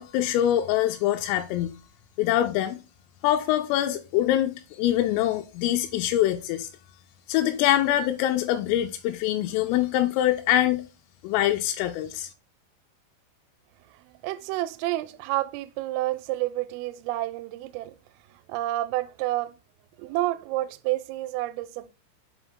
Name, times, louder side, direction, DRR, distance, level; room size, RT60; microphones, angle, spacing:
voice 1, 0.0-1.7 2.2-2.8 3.2-6.7 7.3-10.8 11.2-12.3, left 12 dB, 90° left, 3.2 m, -24 dB
voice 2, 13.9-18.0 18.3-19.6 20.0-21.9, right 16 dB, 85° right, 3.1 m, -30 dB
7.2 x 4.0 x 3.5 m
omnidirectional pair, 5.7 m